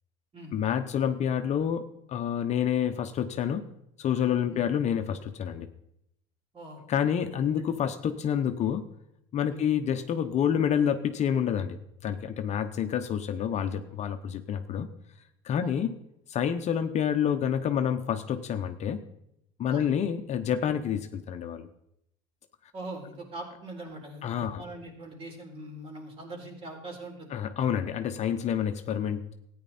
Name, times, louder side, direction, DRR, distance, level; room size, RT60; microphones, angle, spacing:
voice 1, 0.5-3.7 4.0-5.7 6.9-8.9 9.3-14.9 15.4-15.9 16.3-19.0 19.6-21.7 24.2-24.6 27.3-29.3, left 8 dB, 45° left, 8 dB, 0.9 m, -28 dB
voice 2, 22.7-27.3, right 2 dB, 35° right, 1 dB, 3.9 m, -42 dB
14.0 x 9.6 x 4.3 m, 0.77 s
supercardioid pair, 100°, 17 cm